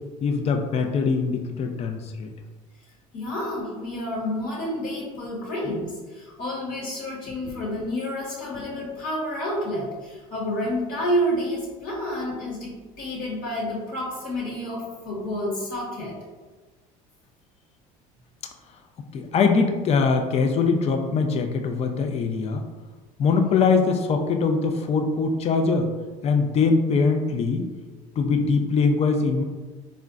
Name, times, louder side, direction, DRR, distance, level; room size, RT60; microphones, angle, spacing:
voice 1, 0.2-2.3 19.1-22.6 23.2-25.9 26.2-27.6 28.2-29.4, left 4 dB, 35° left, 5 dB, 0.4 m, -22 dB
voice 2, 3.1-16.1 23.4-23.5, equal, 55° left, -6 dB, 1.1 m, -29 dB
3.8 x 2.1 x 2.3 m, 1.3 s
hypercardioid pair, 80°, 18 cm